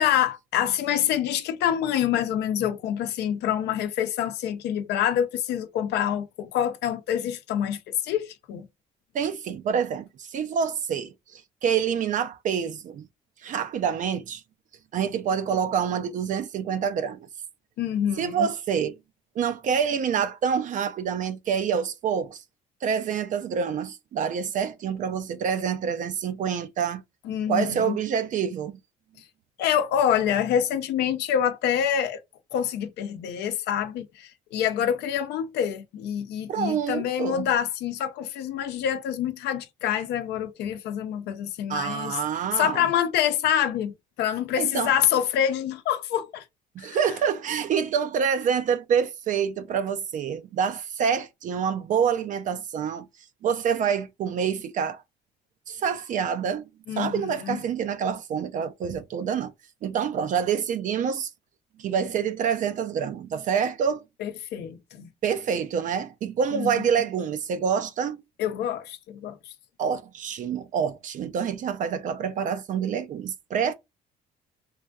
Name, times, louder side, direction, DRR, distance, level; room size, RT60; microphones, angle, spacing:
voice 1, 0.0-8.7 17.8-18.5 27.2-28.0 29.6-32.2 32.5-42.2 42.6-43.9 44.2-46.4 46.8-47.0 56.9-57.6 64.2-65.1 66.5-66.7 68.4-69.4, left 9 dB, 80° left, 0.6 m, -26 dB
voice 2, 9.1-13.1 13.4-14.4 14.9-17.3 18.2-19.0 19.4-22.4 22.8-27.0 27.5-28.8 36.5-37.5 41.7-42.9 44.6-44.9 46.8-53.1 53.4-55.0 55.7-56.7 57.0-59.5 59.8-61.3 61.8-64.0 65.2-68.2 69.8-73.7, right 7 dB, 50° right, 0.4 m, -27 dB
3.2 x 2.6 x 2.2 m
cardioid pair, 110°, 17 cm